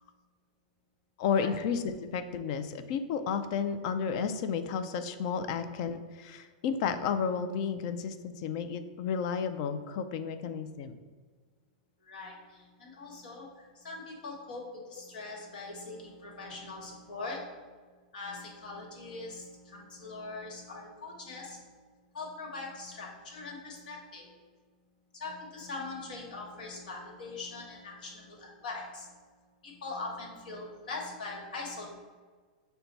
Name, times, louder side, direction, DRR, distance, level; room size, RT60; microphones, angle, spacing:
voice 1, 1.2-11.0, left 6 dB, 45° left, 9 dB, 0.4 m, -32 dB
voice 2, 12.0-17.7 18.1-21.8 22.1-24.4 25.1-29.3 29.6-31.8, left 3 dB, 80° left, -1 dB, 1.3 m, -42 dB
5.7 x 2.2 x 4.0 m, 1.5 s
supercardioid pair, 150°, 5 cm